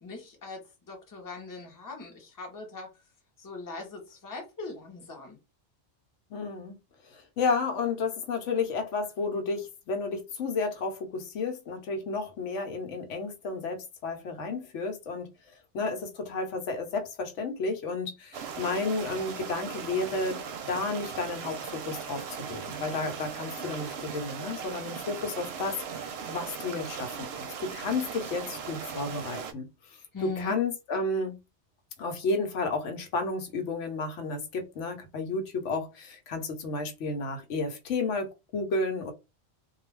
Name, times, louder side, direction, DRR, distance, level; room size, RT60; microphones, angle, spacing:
voice 1, 0.0-2.9 3.4-5.4 30.1-30.6, left 4 dB, 20° left, 0.7 m, -41 dB
voice 2, 6.3-6.7 7.1-15.3 15.7-20.4 20.7-26.0 26.3-29.7 30.2-31.4 32.0-39.1, left 3 dB, 80° left, 1.0 m, -32 dB
sound 1, 18.3-29.5, right 6 dB, 65° right, 0.8 m, -38 dB
2.3 x 2.3 x 3.1 m
omnidirectional pair, 1.2 m